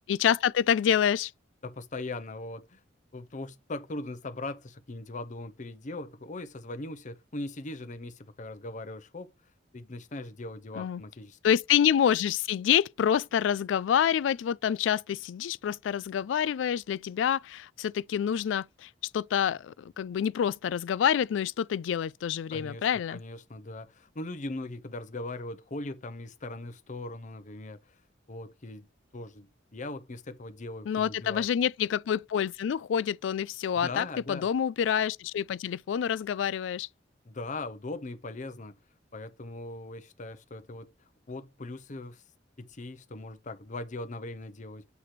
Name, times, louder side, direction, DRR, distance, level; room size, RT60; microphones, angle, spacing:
voice 1, 0.1-1.3 10.7-11.0 11.4-23.2 30.9-36.9, left 8 dB, 80° left, 0.3 m, -27 dB
voice 2, 1.6-2.8 3.1-9.3 9.7-11.4 22.5-28.0 28.3-28.9 29.1-31.5 33.8-34.5 37.2-38.8 39.1-40.9 41.3-42.2 42.6-44.9, left 2 dB, 45° left, 0.8 m, -40 dB
8.2 x 3.2 x 5.8 m
head